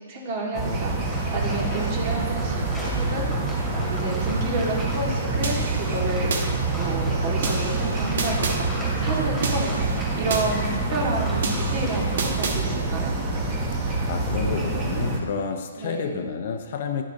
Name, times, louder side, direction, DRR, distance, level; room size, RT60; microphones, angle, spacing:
voice 1, 0.1-2.6 3.0-3.6 3.9-8.7 9.0-13.2 15.8-16.2, right 2 dB, 40° right, -2 dB, 2.0 m, -30 dB
sound 1, 0.5-15.2, right 3 dB, 25° right, 1.3 m, -26 dB
sound 2, 1.0-12.5, equal, ahead, 2.4 m, -37 dB
sound 3, 5.4-6.5 7.4-8.6 9.4-10.5 11.4-12.6, right 4 dB, 65° right, 1.3 m, -30 dB
voice 2, 13.8-17.0, left 6 dB, 50° left, 6 dB, 0.7 m, -30 dB
11.0 x 6.4 x 4.0 m, 1.5 s
hypercardioid pair, 150°, 0 cm